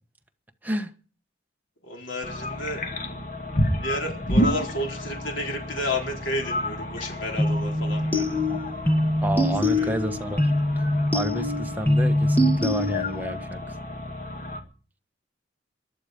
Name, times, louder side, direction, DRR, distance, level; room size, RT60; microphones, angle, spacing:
voice 1, 1.8-2.8 3.8-8.4 9.7-9.9, left 1 dB, 65° left, 4.3 m, -31 dB
sound 1, 2.2-14.6, left 1 dB, 45° left, 2.2 m, -31 dB
sound 2, 7.4-13.3, left 1 dB, 10° left, 1.7 m, -24 dB
voice 2, 9.2-10.5 11.1-13.6, equal, 10° right, 1.3 m, -30 dB
23.0 x 11.5 x 5.1 m
head